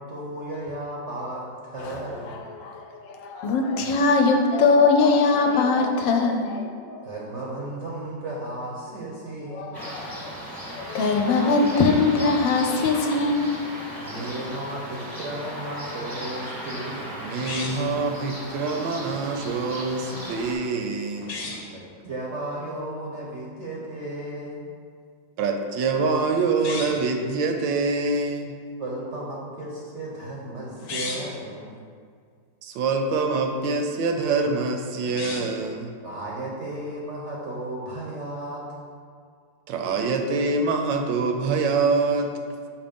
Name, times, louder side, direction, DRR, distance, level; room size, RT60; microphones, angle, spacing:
voice 1, 0.1-2.4 7.0-9.8 14.0-17.1 21.7-21.8 22.1-24.7 28.8-31.8 36.0-38.6, right 1 dB, 55° right, -4 dB, 0.8 m, -34 dB
voice 2, 1.8-7.0 9.5-10.3 10.7-13.5, left 4 dB, 80° left, 3 dB, 1.3 m, -22 dB
sound 1, 9.7-20.5, equal, 15° right, 0.7 m, -36 dB
voice 3, 17.2-21.3 25.4-28.5 32.6-35.9 39.7-42.3, right 4 dB, 75° right, 4 dB, 1.3 m, -25 dB
sound 2, 17.4-18.0 21.2-21.7 26.5-27.1 30.7-31.4 35.0-35.7, left 3 dB, 60° left, 1.1 m, -34 dB
6.8 x 2.9 x 5.1 m, 2.1 s
omnidirectional pair, 2.1 m